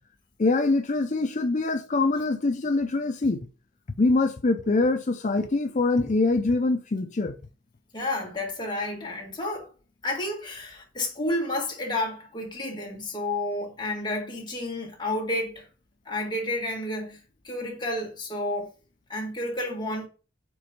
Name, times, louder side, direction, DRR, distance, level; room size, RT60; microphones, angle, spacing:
voice 1, 0.4-3.5 4.0-7.4, left 3 dB, 40° left, 0.5 m, -24 dB
voice 2, 7.9-9.7 10.0-15.7 16.0-18.7 19.1-20.1, left 1 dB, 25° left, 1.6 m, -31 dB
4.7 x 4.2 x 5.1 m
head